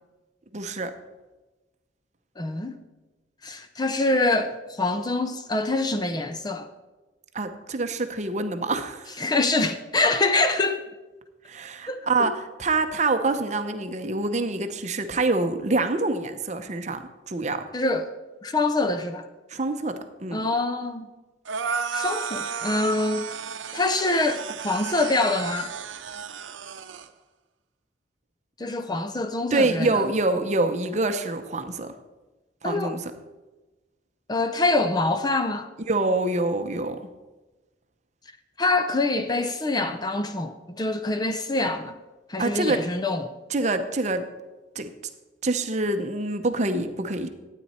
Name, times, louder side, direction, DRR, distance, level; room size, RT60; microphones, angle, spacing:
voice 1, 0.5-0.9 7.3-9.1 11.5-17.7 19.5-20.5 29.5-31.9 32.6-33.0 35.9-37.0 42.4-42.8 43.5-44.3 44.7-44.9 45.4-47.3, right 2 dB, 40° right, 0.7 m, -26 dB
voice 2, 2.4-2.7 3.4-6.7 9.2-10.8 11.9-12.3 17.7-18.1 18.4-19.3 20.3-21.1 21.9-23.5 23.7-25.7 28.6-30.0 32.6-33.0 34.3-35.7 38.6-41.9 42.3-43.3, left 2 dB, 20° left, 0.5 m, -25 dB
sound 1, 21.5-27.1, right 6 dB, 90° right, 0.7 m, -33 dB
12.5 x 9.3 x 4.3 m
head